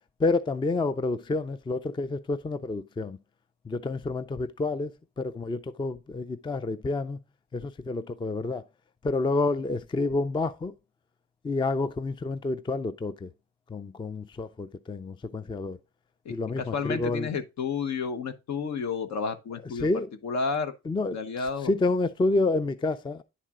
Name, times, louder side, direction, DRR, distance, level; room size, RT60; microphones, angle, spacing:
voice 1, 0.2-3.2 3.6-7.2 7.5-8.6 9.0-10.7 11.4-13.3 13.7-15.8 16.3-17.3 19.8-20.1 20.9-23.2, left 3 dB, 15° left, 0.4 m, -29 dB
voice 2, 16.2-19.9 20.2-20.7 21.1-21.7, left 5 dB, 65° left, 1.1 m, -31 dB
10.0 x 4.3 x 3.7 m
cardioid pair, 90°, 30 cm